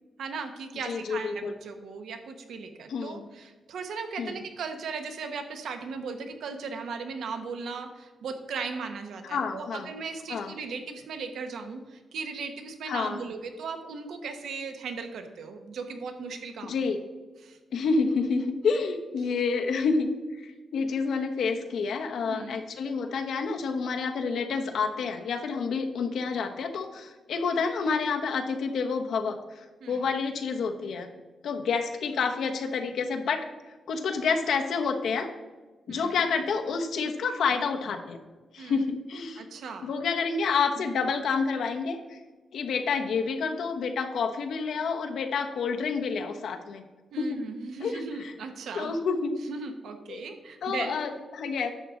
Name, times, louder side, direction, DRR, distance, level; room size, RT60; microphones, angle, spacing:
voice 1, 0.2-16.7 17.4-17.6 22.3-22.6 29.8-30.0 35.9-36.2 38.6-38.8 39.4-39.9 40.8-40.9 47.1-48.9 49.5-51.0, right 5 dB, 80° right, 6 dB, 1.1 m, -37 dB
voice 2, 0.8-1.5 2.9-3.3 4.2-4.4 9.2-9.9 10.3-10.5 12.9-13.2 16.6-17.0 17.7-31.1 31.4-33.4 33.9-35.3 35.9-38.2 38.5-39.4 39.8-42.2 42.5-46.8 47.2-47.4 47.8-48.3 48.7-49.3 50.1-50.2 50.6-51.7, left 5 dB, 75° left, 4 dB, 1.1 m, -29 dB
11.0 x 7.3 x 3.8 m, 1.3 s
wide cardioid pair, 165°, 0 cm